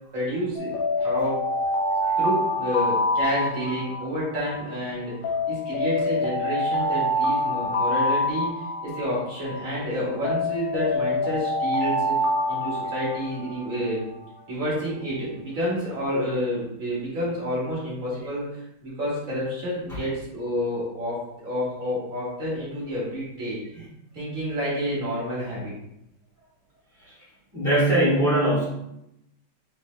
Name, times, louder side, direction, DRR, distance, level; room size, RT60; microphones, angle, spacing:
voice 1, 0.1-0.7 1.0-1.4 2.2-5.1 5.5-8.5 8.8-12.2 12.5-14.0 14.5-23.9 24.1-25.7, equal, 45° right, -6 dB, 1.7 m, -29 dB
Alarm, 0.6-4.7 5.2-9.7 10.2-14.0, left 1 dB, 70° left, 1.4 m, -26 dB
voice 2, 27.5-28.6, right 1 dB, 30° left, -12 dB, 1.8 m, -21 dB
4.0 x 3.2 x 3.2 m, 0.82 s
omnidirectional pair, 2.2 m